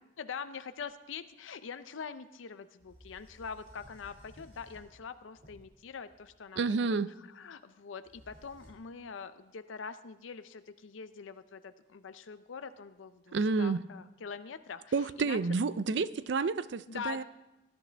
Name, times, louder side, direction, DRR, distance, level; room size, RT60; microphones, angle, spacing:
voice 1, 0.2-14.8 15.2-15.4 16.0-16.1 16.9-17.2, left 6 dB, 90° left, 11 dB, 0.5 m, -44 dB
sound 1, 0.8-0.9 2.8-6.4 8.0-8.7, equal, 40° right, 2.3 m, -57 dB
voice 2, 6.6-7.1 13.3-13.8 14.9-17.2, right 4 dB, 65° right, 16 dB, 0.4 m, -30 dB
19.0 x 10.5 x 3.4 m, 0.99 s
head